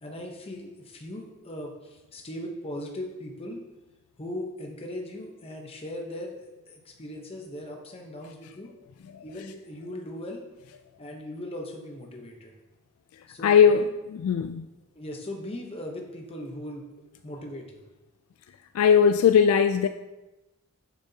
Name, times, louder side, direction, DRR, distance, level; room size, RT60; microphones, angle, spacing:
voice 1, 0.0-3.6 4.2-8.7 9.2-10.4 11.0-12.5 13.3-13.9 15.0-16.8 17.2-17.8, left 1 dB, 25° left, 0.8 m, -39 dB
voice 2, 13.4-13.8 14.1-14.7 18.7-19.9, left 7 dB, 75° left, 0.3 m, -19 dB
9.5 x 7.0 x 2.8 m
head